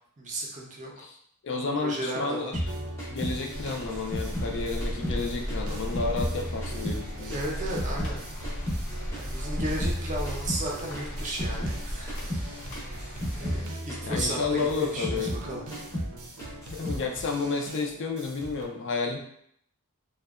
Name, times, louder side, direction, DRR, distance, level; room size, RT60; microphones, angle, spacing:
voice 1, 0.2-0.9 1.8-2.6 7.3-8.2 9.1-12.1 12.4-12.5 13.3-15.6, right 1 dB, 35° right, -2 dB, 0.5 m, -34 dB
voice 2, 1.4-2.5 3.1-7.4 14.0-15.4 16.7-19.2, left 4 dB, 55° left, 2 dB, 0.4 m, -31 dB
sound 1, 2.5-5.2 5.5-8.2 8.4-11.8 12.1-12.5 12.7-15.5 15.7-16.1 16.4-17.0, equal, 10° left, 0.6 m, -33 dB
sound 2, 2.7-18.7, right 2 dB, 80° right, 0.5 m, -44 dB
sound 3, 3.5-13.7, equal, 75° left, 0.8 m, -36 dB
2.7 x 2.1 x 2.3 m, 0.67 s
head